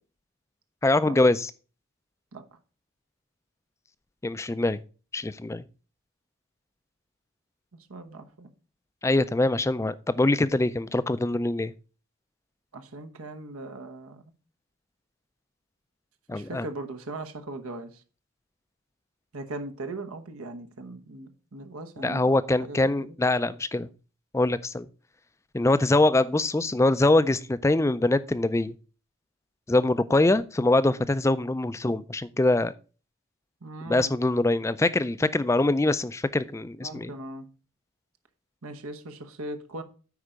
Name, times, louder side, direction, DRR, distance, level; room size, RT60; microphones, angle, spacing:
voice 1, 0.8-1.5 4.2-4.8 5.1-5.6 9.0-11.7 16.3-16.7 22.0-23.9 24.3-24.9 25.5-28.8 29.7-32.7 33.9-37.1, left 2 dB, 15° left, 0.3 m, -23 dB
voice 2, 7.7-8.5 12.7-14.2 16.3-18.0 19.3-23.2 33.6-34.2 36.8-37.5 38.6-39.8, right 2 dB, 85° right, 1.0 m, -39 dB
9.7 x 4.5 x 5.0 m
head